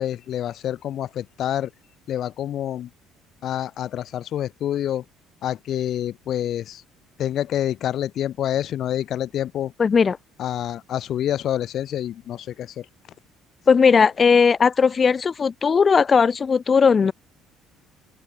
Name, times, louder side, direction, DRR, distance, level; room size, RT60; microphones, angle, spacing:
voice 1, 0.0-1.7 2.1-2.9 3.4-5.0 5.4-6.8 7.2-9.7 10.4-12.8, left 11 dB, 60° left, 1.1 m, -27 dB
voice 2, 9.8-10.2 13.7-17.1, left 5 dB, 40° left, 0.8 m, -17 dB
open air
hypercardioid pair, 60°, 0 cm